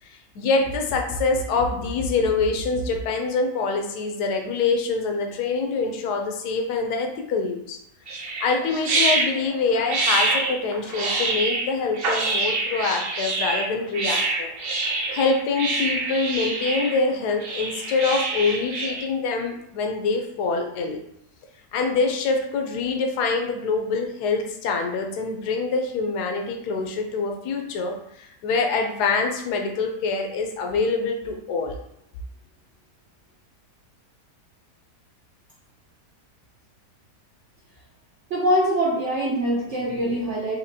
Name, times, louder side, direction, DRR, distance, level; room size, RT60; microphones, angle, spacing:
voice 1, 0.0-7.8 8.4-14.5 15.1-21.0 21.7-31.8, left 4 dB, 80° left, 3 dB, 1.2 m, -25 dB
sound 1, 8.1-19.0, right 3 dB, 80° right, 0.5 m, -26 dB
voice 2, 38.3-40.6, equal, 55° right, -5 dB, 0.9 m, -23 dB
4.3 x 2.8 x 2.7 m, 0.78 s
omnidirectional pair, 1.7 m